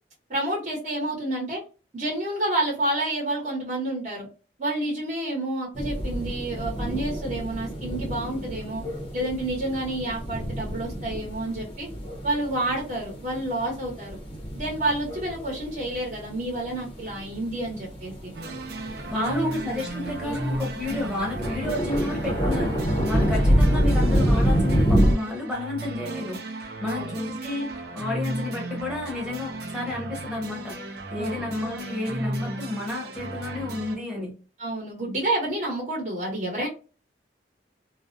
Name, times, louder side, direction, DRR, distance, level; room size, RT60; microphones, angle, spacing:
voice 1, 0.3-1.6 1.9-4.3 4.6-8.8 9.1-11.9 12.2-14.2 14.5-18.3 19.1-19.5 19.9-20.4 26.8-27.1 31.2-31.5 34.6-36.7, right 1 dB, 40° right, -4 dB, 0.9 m, -29 dB
sound 1, 5.8-25.1, equal, 30° left, 0.6 m, -27 dB
sound 2, 18.3-34.0, right 2 dB, 60° right, 0.5 m, -35 dB
voice 2, 19.1-30.8 31.1-34.3, left 2 dB, 5° right, -3 dB, 0.9 m, -31 dB
2.4 x 2.0 x 2.5 m, 0.34 s
head